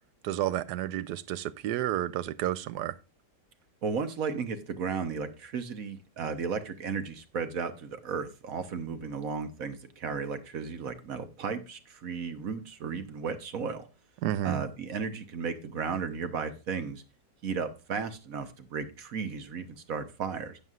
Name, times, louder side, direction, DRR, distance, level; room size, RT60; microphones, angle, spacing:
voice 1, 0.2-3.0 14.2-14.6, right 12 dB, 75° right, 1.2 m, -31 dB
voice 2, 3.8-13.9 14.4-17.0 17.4-20.6, right 5 dB, 55° right, 1.3 m, -34 dB
12.0 x 9.2 x 2.4 m
omnidirectional pair, 1.8 m